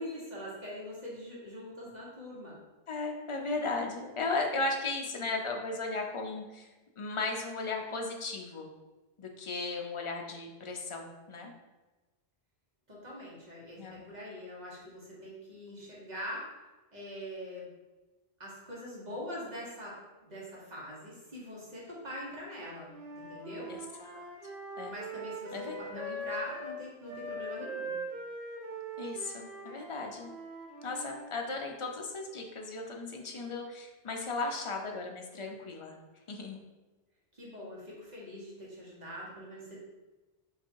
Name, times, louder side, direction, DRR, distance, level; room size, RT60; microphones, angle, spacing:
voice 1, 0.0-2.6 12.9-16.6 16.9-17.7 18.4-23.7 24.9-27.9 37.3-39.8, equal, 45° right, -5 dB, 1.3 m, -43 dB
voice 2, 2.9-6.7 7.0-8.7 9.2-11.5 13.8-14.0 23.7-24.2 24.8-24.9 25.5-26.0 29.0-30.3 30.8-35.9 36.3-36.6, left 3 dB, 40° left, 2 dB, 0.4 m, -36 dB
Wind instrument woodwind instrument, 22.9-26.8 27.1-31.3, right 1 dB, 85° right, 1.1 m, -41 dB
3.9 x 2.7 x 4.4 m, 1.2 s
omnidirectional pair, 1.1 m